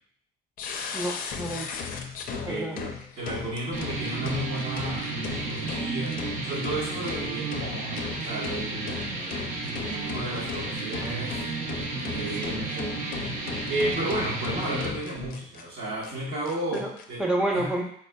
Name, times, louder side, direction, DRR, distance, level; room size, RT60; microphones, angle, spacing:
sound 1, 0.6-15.6 16.0-16.1 16.4-17.0, left 6 dB, 55° left, 0.4 m, -37 dB
voice 1, 0.9-1.7 2.4-2.8 16.7-16.9 17.2-17.8, right 1 dB, 5° right, -1 dB, 0.7 m, -28 dB
voice 2, 2.3-9.1 9.5-11.4 12.0-13.1 13.7-17.2 17.5-17.7, right 1 dB, 70° right, -7 dB, 1.3 m, -33 dB
sound 2, 3.7-14.9, right 3 dB, 50° right, 0.7 m, -33 dB
4.1 x 2.6 x 2.2 m, 0.63 s
cardioid pair, 110°, 17 cm